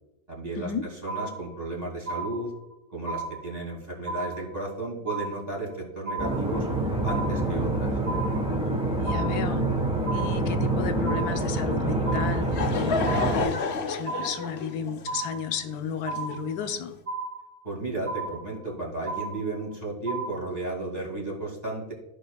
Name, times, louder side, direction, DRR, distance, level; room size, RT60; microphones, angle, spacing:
voice 1, 0.3-0.7 1.0-2.5 2.9-6.7 7.0-7.9 17.6-21.9, right 2 dB, 25° right, -3 dB, 2.4 m, -33 dB
sound 1, 1.1-1.7 2.1-2.7 3.1-3.7 4.1-4.7 5.1-5.7 6.1-6.7 7.1-7.7 8.1-8.7 9.1-9.7 10.1-10.7 11.1-11.7 12.1-12.7 13.1-13.7 14.1-14.7 15.1-15.7 16.1-16.7 17.1-17.7 18.1-18.7 19.1-19.7 20.1-20.7, right 3 dB, 40° right, 1.1 m, -35 dB
sound 2, 6.2-13.4, right 1 dB, 5° right, 0.8 m, -26 dB
voice 2, 9.0-9.6 10.1-16.9, left 7 dB, 75° left, 8 dB, 1.2 m, -33 dB
Laughter / Crowd, 12.1-16.8, left 4 dB, 55° left, 0.8 m, -31 dB
15.0 x 5.1 x 2.3 m, 0.93 s
omnidirectional pair, 1.7 m